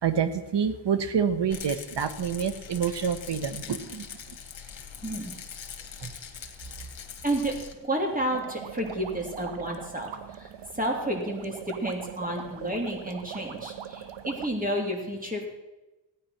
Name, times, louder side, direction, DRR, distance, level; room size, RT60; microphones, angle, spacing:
voice 1, 0.0-4.1 6.0-6.1, right 7 dB, 65° right, 12 dB, 1.2 m, -27 dB
Rattle, 1.5-7.7, left 8 dB, 70° left, 1.7 m, -42 dB
voice 2, 5.0-5.3 7.2-7.5 7.8-15.4, right 1 dB, 20° right, 1 dB, 3.3 m, -31 dB
sound 1, 8.3-14.5, right 8 dB, 80° right, 0.9 m, -41 dB
15.0 x 9.6 x 5.9 m, 1.0 s
cardioid pair, 85°, 46 cm